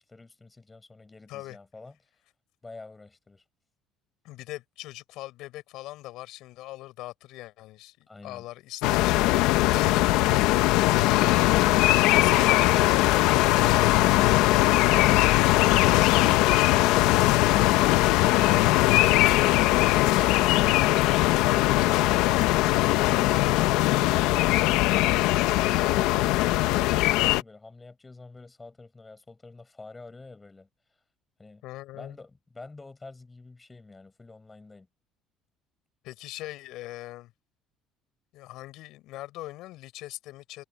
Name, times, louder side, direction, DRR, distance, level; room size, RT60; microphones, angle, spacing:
voice 1, 0.0-2.1 2.6-3.4 8.1-8.4 24.2-30.7 31.4-31.6 31.9-34.9, left 3 dB, 15° left, 6.5 m, -47 dB
voice 2, 4.2-9.2 11.9-13.5 23.0-23.4 31.6-32.2 36.0-37.3 38.3-40.6, left 17 dB, 65° left, 6.9 m, -41 dB
sound 1, 8.8-27.4, left 17 dB, 85° left, 1.0 m, -21 dB
cardioid pair, 150°, 0 cm